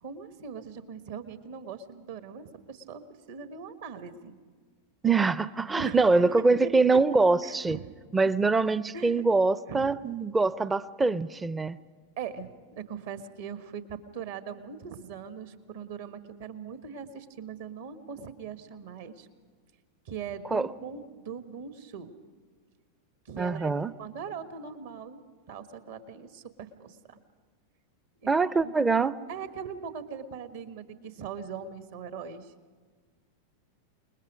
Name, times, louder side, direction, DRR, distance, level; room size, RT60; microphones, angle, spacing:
voice 1, 0.0-4.4 5.7-6.7 7.4-7.9 8.9-9.3 9.7-10.0 12.2-19.3 20.0-22.1 23.2-23.7 24.0-25.2 25.5-27.2 28.2-28.3 28.6-28.7 29.3-32.5, right 6 dB, 55° right, 10 dB, 1.5 m, -40 dB
voice 2, 5.0-7.8 8.1-11.8 20.5-20.7 23.4-23.9 28.3-29.1, right 3 dB, 15° right, 18 dB, 0.6 m, -24 dB
29.0 x 20.5 x 5.2 m, 1.5 s
figure-of-eight pair, 90°, 0 cm